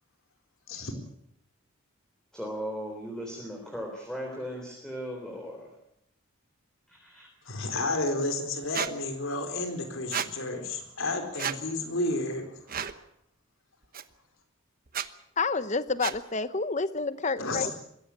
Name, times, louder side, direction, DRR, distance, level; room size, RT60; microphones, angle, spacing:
voice 1, 2.3-5.7 7.0-7.3, equal, 5° left, 0 dB, 3.7 m, -37 dB
voice 2, 7.5-12.5 17.4-17.7, left 2 dB, 70° left, 5 dB, 4.4 m, -31 dB
Squeak, 8.7-8.9 10.1-10.3 11.4-11.6 12.7-13.0 13.9-14.0 14.9-15.1 16.0-16.2, right 8 dB, 45° right, 1.0 m, -31 dB
voice 3, 15.4-17.7, left 4 dB, 35° left, 14 dB, 0.9 m, -29 dB
22.0 x 16.0 x 8.7 m, 0.76 s
head